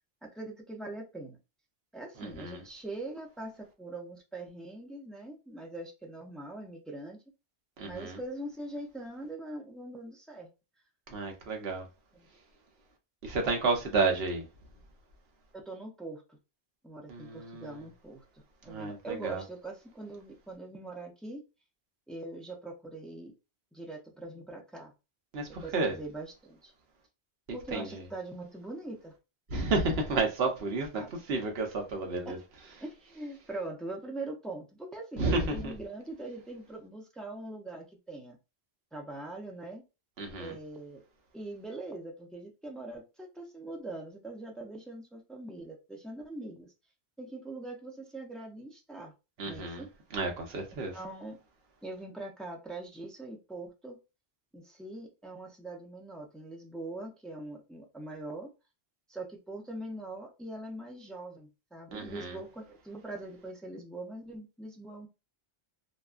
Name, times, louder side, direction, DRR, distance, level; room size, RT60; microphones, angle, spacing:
voice 1, 0.2-1.4 1.9-7.2 7.8-10.5 12.1-12.3 15.5-16.4 16.8-21.4 22.1-23.3 23.7-24.9 25.6-26.7 27.5-29.1 30.9-31.1 32.3-32.4 32.8-38.4 38.9-39.8 40.4-41.0 41.3-46.7 47.2-49.1 49.4-49.9 50.9-51.4 51.8-54.0 54.5-58.5 59.1-65.1, right 2 dB, ahead, 0.3 m, -42 dB
voice 2, 2.2-2.6 7.8-8.2 11.1-11.9 13.2-14.5 17.1-17.8 18.7-19.4 25.3-25.9 27.7-28.0 29.5-32.4 35.2-35.7 40.2-40.6 49.4-49.8 50.1-51.0 61.9-62.4, right 3 dB, 70° right, 1.0 m, -31 dB
2.6 x 2.3 x 2.4 m
omnidirectional pair, 1.1 m